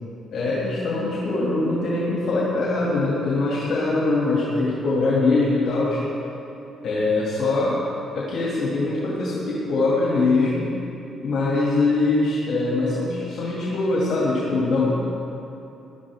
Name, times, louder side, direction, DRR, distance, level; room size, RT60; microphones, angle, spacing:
voice 1, 0.3-6.0 6.8-7.8 8.1-10.7 11.2-14.9, left 3 dB, 70° left, -6 dB, 2.4 m, -22 dB
17.5 x 12.0 x 3.7 m, 2.9 s
cardioid pair, 90°, 0 cm